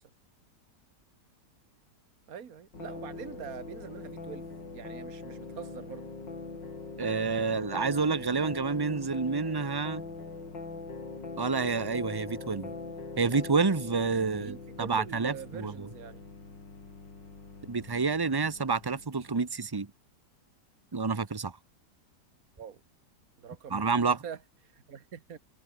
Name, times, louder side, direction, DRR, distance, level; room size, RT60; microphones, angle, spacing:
voice 1, 2.3-6.1 14.4-16.2 22.6-22.8 23.4-25.4, right 8 dB, 55° right, 2.1 m, -44 dB
sound 1, 2.7-19.5, left 3 dB, 85° left, 4.9 m, -42 dB
voice 2, 7.0-10.0 11.4-12.7 13.2-15.9 17.6-19.9 20.9-21.5 23.7-24.2, right 4 dB, 25° right, 0.5 m, -29 dB
omnidirectional pair, 1.9 m